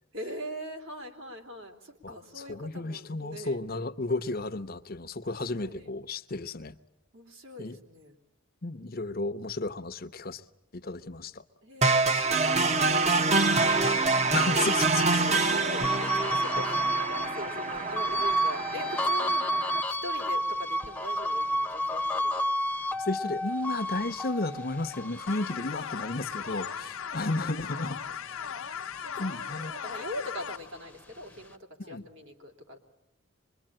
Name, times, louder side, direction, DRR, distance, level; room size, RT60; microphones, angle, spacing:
voice 1, 0.1-3.6 5.3-5.9 7.1-8.2 11.6-13.6 15.2-19.4 19.9-22.5 27.1-28.2 29.0-32.8, equal, 75° right, 3.6 m, -42 dB
voice 2, 2.0-6.8 7.6-7.8 8.6-10.4 10.7-11.4 14.3-15.2 22.9-28.0 29.2-29.7 31.8-32.1, left 2 dB, 45° left, 0.9 m, -33 dB
sound 1, 11.8-19.8, right 3 dB, 30° right, 1.0 m, -26 dB
sound 2, 15.8-28.5 28.9-30.5, equal, 5° left, 0.9 m, -31 dB
sound 3, 25.3-30.6, left 8 dB, 80° left, 0.9 m, -38 dB
26.0 x 22.5 x 8.9 m
head